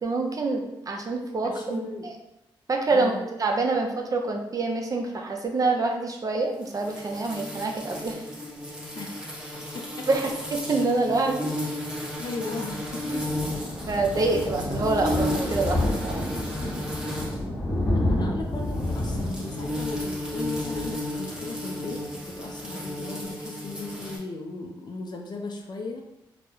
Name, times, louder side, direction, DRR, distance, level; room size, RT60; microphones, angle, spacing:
voice 1, 0.0-2.1 2.7-3.1 3.4-8.2 10.1-11.5 13.9-16.3, right 3 dB, 40° right, 2 dB, 0.5 m, -26 dB
voice 2, 1.4-2.1 2.9-3.2 8.9-9.3 9.7-10.1 12.2-13.3 13.6-13.7 17.9-26.0, left 3 dB, 50° left, 2 dB, 0.4 m, -37 dB
sound 1, 6.6-17.5 18.5-24.2, left 1 dB, 10° right, 0.8 m, -34 dB
Thunder, 12.4-21.7 22.1-22.3 22.6-22.7 22.9-23.0, left 1 dB, 20° left, 1.2 m, -30 dB
2.2 x 2.0 x 3.0 m, 0.90 s
cardioid pair, 60°, 10 cm